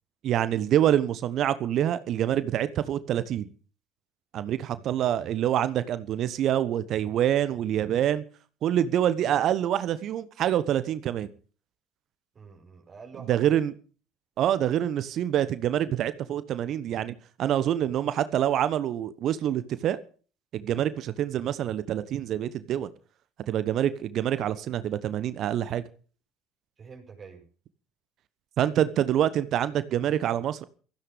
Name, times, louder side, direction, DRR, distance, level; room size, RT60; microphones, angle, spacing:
voice 1, 0.2-3.5 4.3-8.2 8.6-11.3 13.3-13.7 14.4-20.0 20.5-22.9 23.5-25.8 28.6-30.6, right 11 dB, 50° right, 14 dB, 1.2 m, -26 dB
voice 2, 4.4-4.9 12.3-13.5 26.8-27.4, right 5 dB, 35° right, 3 dB, 5.6 m, -47 dB
17.0 x 15.0 x 5.3 m, 0.41 s
figure-of-eight pair, 60°, 0 cm